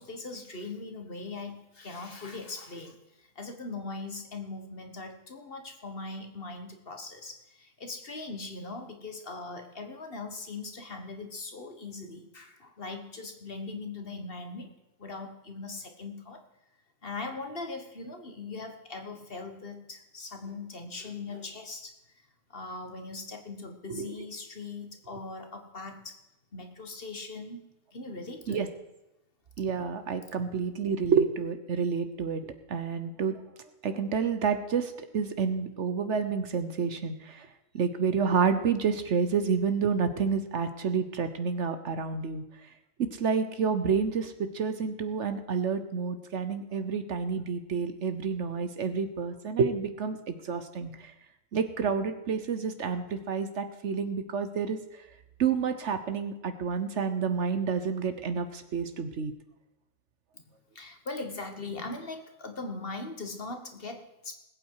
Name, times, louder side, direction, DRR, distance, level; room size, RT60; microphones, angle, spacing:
voice 1, 0.0-3.0 3.3-14.7 15.0-16.4 17.0-21.9 22.5-26.2 26.5-27.6 27.9-28.7 60.3-60.4 60.7-64.4, left 3 dB, 45° left, 5 dB, 1.6 m, -40 dB
voice 2, 29.6-32.4 32.7-33.4 33.8-37.5 37.7-42.4 43.2-50.9 51.5-54.8 55.4-59.3, right 6 dB, 60° right, 10 dB, 1.2 m, -29 dB
20.0 x 8.6 x 4.8 m, 0.94 s
omnidirectional pair, 1.4 m